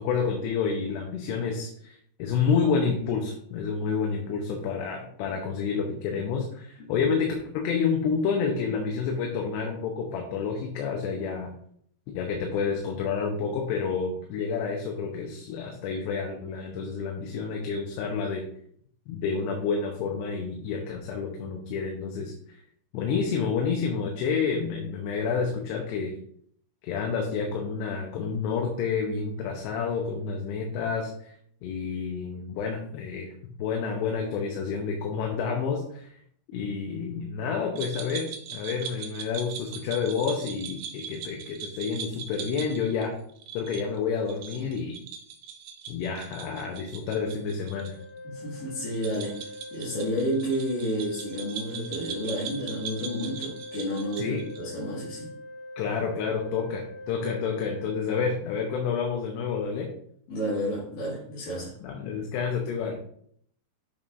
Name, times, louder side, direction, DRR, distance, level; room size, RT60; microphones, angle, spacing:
voice 1, 0.0-11.5 12.1-18.4 19.1-22.6 22.9-26.1 26.8-31.4 31.6-33.3 33.6-36.2 36.5-43.1 43.5-44.9 45.9-48.0 54.2-54.4 55.8-59.9 61.8-62.9, left 5 dB, 80° left, 1 dB, 3.0 m, -29 dB
sound 1, 37.8-47.9 48.2-48.3 48.9-54.7, right 7 dB, 80° right, 2.7 m, -40 dB
Organ, 47.7-58.8, left 1 dB, 50° right, 2.4 m, -43 dB
voice 2, 48.2-55.3 60.3-61.7, equal, 60° left, -8 dB, 3.4 m, -31 dB
9.1 x 6.4 x 2.6 m, 0.65 s
omnidirectional pair, 4.9 m